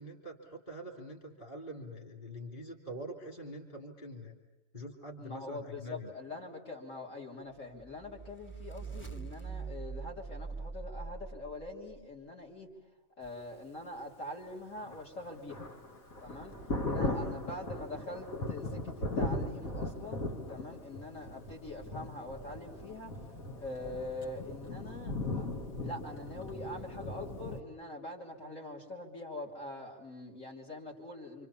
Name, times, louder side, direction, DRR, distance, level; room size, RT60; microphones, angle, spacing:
voice 1, 0.0-4.4 4.7-6.1 17.1-17.4, equal, 40° left, 2 dB, 3.6 m, -45 dB
voice 2, 5.2-12.7 13.2-15.7 16.2-16.6 16.9-23.2 23.6-25.5 25.8-31.5, left 2 dB, 65° left, -1 dB, 3.8 m, -44 dB
sound 1, 7.8-12.0, right 5 dB, 10° left, 1.0 m, -43 dB
Thunder, 14.8-27.6, left 2 dB, 85° left, 2.6 m, -38 dB
28.0 x 26.5 x 7.1 m, 1.0 s
omnidirectional pair, 1.4 m